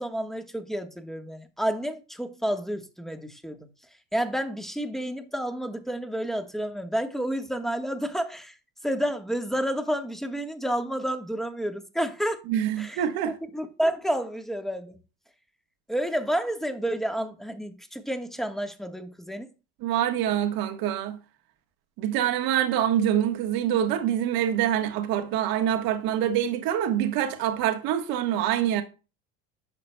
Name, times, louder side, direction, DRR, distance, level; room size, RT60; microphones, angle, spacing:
voice 1, 0.0-3.7 4.1-8.5 8.8-12.4 12.8-15.0 15.9-19.5, right 1 dB, ahead, 1.3 m, -30 dB
voice 2, 12.5-13.3 19.8-21.2 22.0-28.8, right 10 dB, 60° right, 1.4 m, -25 dB
11.0 x 6.6 x 2.2 m
supercardioid pair, 90°, 40 cm